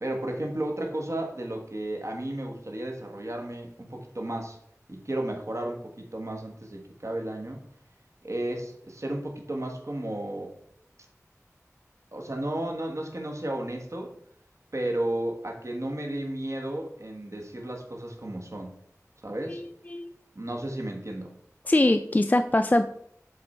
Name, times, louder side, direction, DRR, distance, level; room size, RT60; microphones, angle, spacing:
voice 1, 0.0-4.6 4.9-7.6 8.2-10.5 12.1-14.1 14.7-18.8 19.2-19.6 20.3-21.3, right 1 dB, 60° right, 2 dB, 1.3 m, -33 dB
voice 2, 19.5-20.1 21.7-22.8, left 1 dB, 30° left, 8 dB, 0.3 m, -23 dB
7.8 x 3.9 x 4.3 m, 0.68 s
wide cardioid pair, 45°, 6 cm